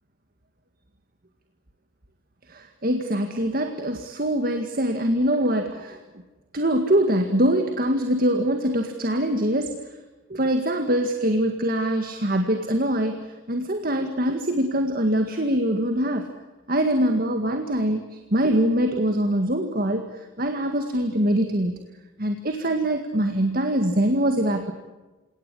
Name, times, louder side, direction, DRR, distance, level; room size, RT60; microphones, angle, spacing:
voice 1, 2.5-6.0 6.5-9.7 10.3-16.3 16.7-21.8 22.2-24.7, right 1 dB, 45° right, 6 dB, 1.9 m, -23 dB
28.5 x 18.0 x 9.9 m, 1.2 s
head